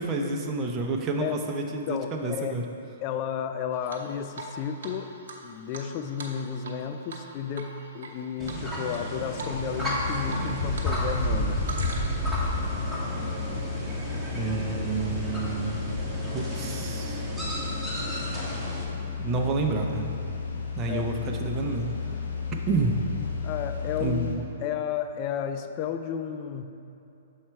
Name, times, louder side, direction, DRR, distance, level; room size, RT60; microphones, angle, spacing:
voice 1, 0.0-2.6 14.3-15.8 16.3-17.2 19.2-20.1 20.8-21.9 22.7-23.0 24.0-24.5, right 3 dB, 25° right, 2 dB, 0.6 m, -29 dB
voice 2, 1.9-2.6 3.0-5.1 5.4-11.6 20.9-21.1 23.4-26.6, left 8 dB, 40° left, 8 dB, 0.3 m, -32 dB
Drip, 3.9-4.5 4.8-4.9 5.3-6.8 7.1-7.3 7.5-8.1 8.5-9.0 9.4-9.5 9.8-10.9 11.2-12.3, right 4 dB, 70° right, 0.8 m, -40 dB
sound 1, 8.4-18.8, equal, ahead, 1.3 m, -32 dB
sound 2, 9.7-24.4, left 5 dB, 80° left, 0.8 m, -34 dB
6.4 x 4.3 x 4.5 m, 2.7 s
hypercardioid pair, 130°, 0 cm